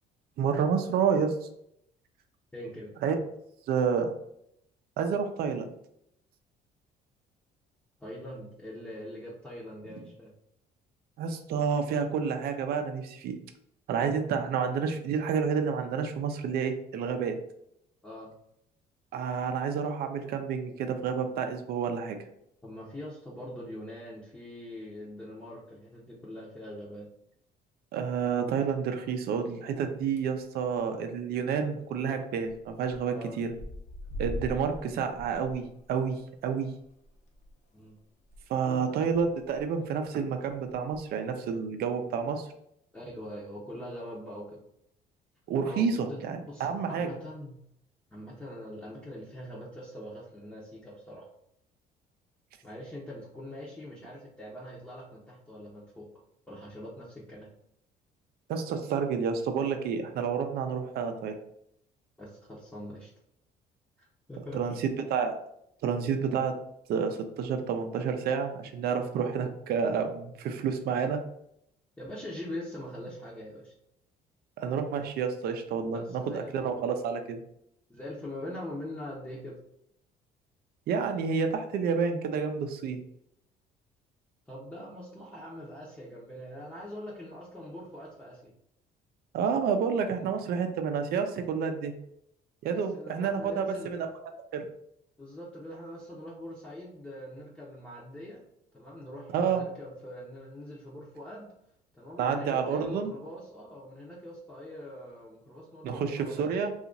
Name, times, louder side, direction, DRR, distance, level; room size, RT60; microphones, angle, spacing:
voice 1, 0.4-1.5 3.0-3.2 3.7-4.1 5.0-5.7 11.2-13.4 13.9-17.4 19.1-22.2 27.9-33.5 34.2-36.7 38.5-42.5 45.5-47.1 58.5-61.3 64.5-65.4 65.8-66.5 66.9-71.2 74.6-77.4 80.9-83.0 89.3-91.9 92.6-94.1 94.5-94.7 99.3-99.6 102.2-103.1 105.8-106.7, right 6 dB, 65° right, 6 dB, 0.5 m, -29 dB
voice 2, 2.5-2.9 8.0-10.3 18.0-18.3 22.6-27.1 33.1-33.4 37.7-38.0 38.7-38.9 42.9-44.6 45.6-47.6 48.1-51.3 52.6-56.1 56.5-57.5 62.2-63.1 64.0-64.8 72.0-73.7 75.9-76.7 77.9-79.5 84.5-88.5 92.7-93.9 95.2-98.4 98.7-101.5 101.9-106.5, left 1 dB, 10° left, -5 dB, 0.7 m, -43 dB
sound 1, 30.0-30.4 30.7-31.1 31.3-31.4 31.6-31.7 32.5-33.0 33.3-38.4 38.7-38.8 39.1-39.6 40.3-41.0, left 1 dB, 45° left, 0.7 m, -42 dB
2.8 x 2.4 x 3.8 m, 0.75 s
cardioid pair, 110°, 17 cm